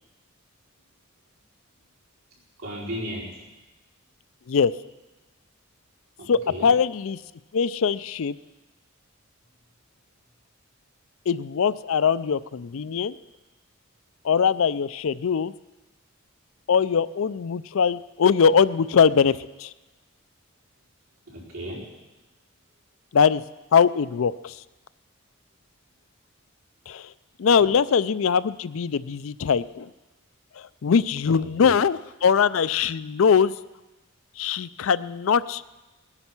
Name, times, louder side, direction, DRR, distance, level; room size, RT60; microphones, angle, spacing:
voice 1, 2.6-3.4 6.2-6.7 21.3-21.9 27.6-27.8 31.4-31.8, equal, 80° right, -5 dB, 4.9 m, -36 dB
voice 2, 6.3-7.2 7.5-8.4 11.3-13.2 14.2-15.5 16.7-19.7 23.1-23.4 23.7-24.6 26.9-27.1 27.4-29.9 30.6-33.5 34.4-35.6, left 6 dB, 70° left, 16 dB, 0.4 m, -21 dB
19.5 x 9.8 x 6.0 m, 1.1 s
head